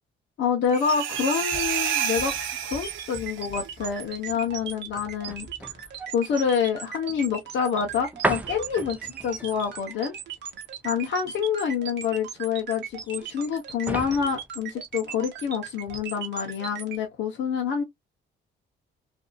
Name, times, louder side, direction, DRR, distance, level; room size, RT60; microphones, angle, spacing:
voice 1, 0.4-2.3 2.6-5.5 6.1-10.1 10.8-17.8, left 7 dB, 70° left, 0.8 m, -27 dB
sound 1, 0.6-17.0, right 8 dB, 60° right, 1.0 m, -38 dB
sound 2, 0.7-3.5, right 9 dB, 85° right, 0.8 m, -29 dB
sound 3, 1.1-15.5 15.8-16.1, right 1 dB, 5° right, 0.6 m, -38 dB
2.6 x 2.5 x 2.3 m
cardioid pair, 90°, 20 cm